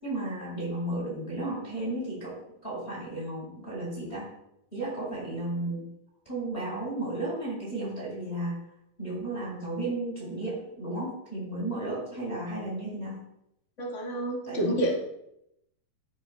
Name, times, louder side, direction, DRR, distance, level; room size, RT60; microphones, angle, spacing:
voice 1, 0.0-2.4 2.6-4.3 4.7-5.8 6.2-8.6 9.0-13.2 14.5-14.6, right 2 dB, 15° left, -6 dB, 4.4 m, -33 dB
voice 2, 13.8-15.0, equal, 50° left, -3 dB, 0.9 m, -28 dB
16.5 x 8.2 x 2.3 m, 0.81 s
omnidirectional pair, 4.5 m